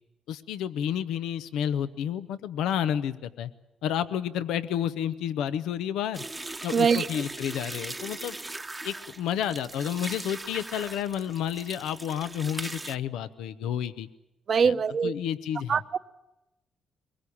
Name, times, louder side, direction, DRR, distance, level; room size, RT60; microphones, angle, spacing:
voice 1, 0.3-3.5 3.8-6.2 6.6-8.4 8.8-14.1 14.6-14.7 15.0-15.8, left 9 dB, 90° left, 0.8 m, -30 dB
sound 1, 6.1-13.0, right 2 dB, 15° right, 0.9 m, -39 dB
voice 2, 6.7-7.1 14.5-15.1 15.7-16.0, right 6 dB, 50° right, 0.9 m, -23 dB
23.5 x 21.5 x 8.6 m
cardioid pair, 90°, 0 cm